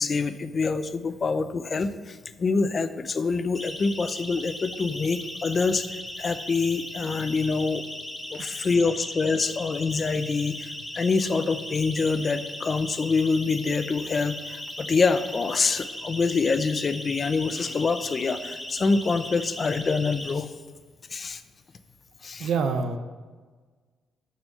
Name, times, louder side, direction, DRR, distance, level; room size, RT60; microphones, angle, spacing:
voice 1, 0.0-7.8 8.3-20.5 21.1-21.4 22.2-22.5, left 4 dB, 35° left, 11 dB, 0.6 m, -26 dB
Siren, 3.5-20.3, left 1 dB, 10° left, 1.2 m, -38 dB
voice 2, 22.4-23.0, right 5 dB, 70° right, 6 dB, 0.7 m, -27 dB
6.9 x 6.3 x 6.6 m, 1.4 s
cardioid pair, 95°, 0 cm